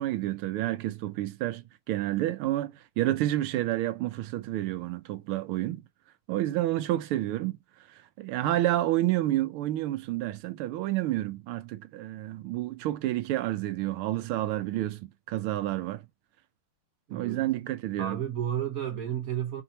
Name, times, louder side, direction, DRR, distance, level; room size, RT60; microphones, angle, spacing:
voice 1, 0.0-5.8 6.3-7.6 8.2-16.0 17.1-18.2, right 15 dB, 80° right, 1.5 m, -29 dB
voice 2, 17.1-17.4 18.0-19.6, right 10 dB, 60° right, 0.9 m, -32 dB
5.4 x 2.8 x 2.7 m
omnidirectional pair, 2.4 m